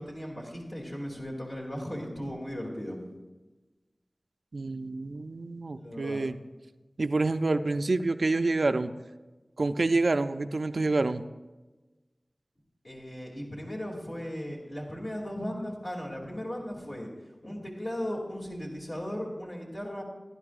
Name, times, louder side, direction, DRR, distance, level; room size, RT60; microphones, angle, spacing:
voice 1, 0.0-3.0 5.8-6.2 12.8-17.1 17.4-20.0, equal, 50° left, -5 dB, 2.6 m, -37 dB
voice 2, 4.5-6.4 7.0-8.9 9.6-11.2, right 3 dB, 80° right, 9 dB, 0.4 m, -27 dB
18.0 x 11.5 x 2.5 m, 1.2 s
wide cardioid pair, 50°, 0 cm